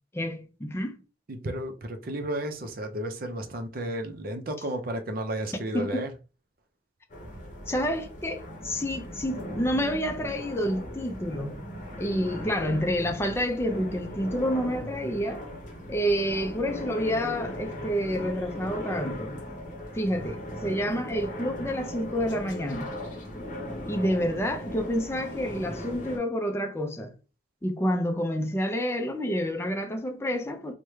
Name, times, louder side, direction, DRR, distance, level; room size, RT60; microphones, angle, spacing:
voice 1, 0.1-1.0 5.5-6.1 7.7-11.6 12.0-15.4 15.9-19.4 19.9-22.9 23.9-27.1 27.6-30.7, equal, 15° left, 0.4 m, -29 dB
voice 2, 1.3-6.1, right 1 dB, 50° right, 0.6 m, -33 dB
sound 1, 7.1-26.2, equal, 45° left, 0.8 m, -38 dB
3.4 x 2.1 x 3.1 m
head